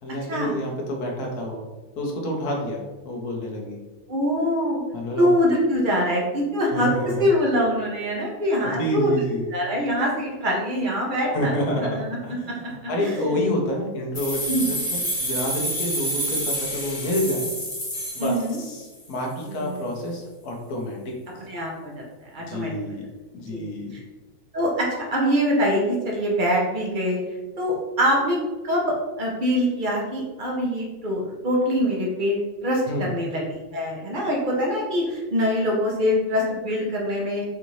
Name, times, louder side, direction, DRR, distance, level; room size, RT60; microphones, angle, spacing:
voice 1, 0.0-1.7 2.0-3.8 4.9-5.3 6.7-7.3 8.6-9.4 11.3-12.0 12.2-17.5 18.1-21.2 22.5-23.0 23.3-23.9 32.9-33.1, left 1 dB, 75° left, -1 dB, 1.3 m, -28 dB
voice 2, 4.1-4.8 5.2-6.9 7.2-9.2 9.5-11.5 12.0-12.2 12.5-12.6 13.0-13.1 14.5-14.7 18.2-18.6 19.5-19.8 21.5-22.0 22.3-22.7 23.5-23.6 24.5-27.2 27.6-28.4 28.6-28.8 29.2-33.4 33.7-37.4, equal, 40° right, -2 dB, 0.8 m, -24 dB
sound 1, 14.1-18.9, right 1 dB, 30° left, 1.2 m, -28 dB
4.7 x 2.6 x 3.0 m, 1.2 s
omnidirectional pair, 1.6 m